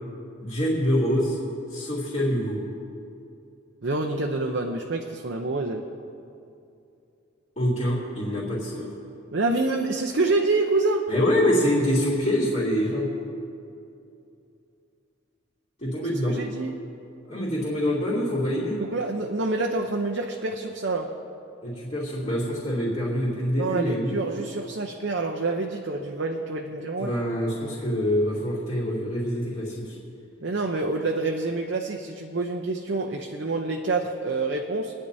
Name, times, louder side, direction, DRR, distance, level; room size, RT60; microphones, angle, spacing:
voice 1, 0.4-1.4 1.7-2.6 7.6-8.9 11.1-13.1 15.8-16.4 17.2-18.8 21.6-24.1 27.0-30.0, equal, 30° left, -10 dB, 2.8 m, -25 dB
voice 2, 3.8-5.9 9.3-11.1 16.3-16.7 18.8-21.1 23.6-27.1 30.4-34.9, right 3 dB, 60° right, 1 dB, 0.7 m, -27 dB
25.5 x 9.9 x 2.7 m, 2.6 s
head